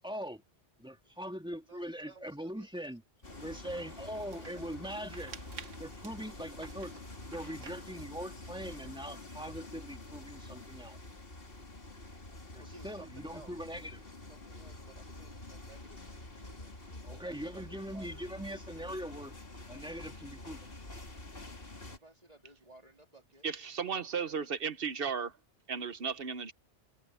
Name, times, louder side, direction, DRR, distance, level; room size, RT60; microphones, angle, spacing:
voice 1, 0.0-0.4 0.8-3.0 3.4-5.4 5.8-6.9 7.3-11.0 12.5-14.0 17.0-19.3 19.7-20.7, equal, 5° right, 2.1 m, -41 dB
voice 2, 1.6-2.7 3.9-4.8 12.6-13.6 14.1-18.3 21.8-23.5 23.9-24.3, right 2 dB, 30° right, 3.2 m, -57 dB
Train under the bridge, 3.2-22.0, left 2 dB, 50° left, 3.1 m, -47 dB
sound 1, 3.3-8.4, right 6 dB, 90° right, 1.7 m, -52 dB
voice 3, 23.4-25.4 25.7-26.5, right 6 dB, 55° right, 1.0 m, -35 dB
omnidirectional pair, 1.2 m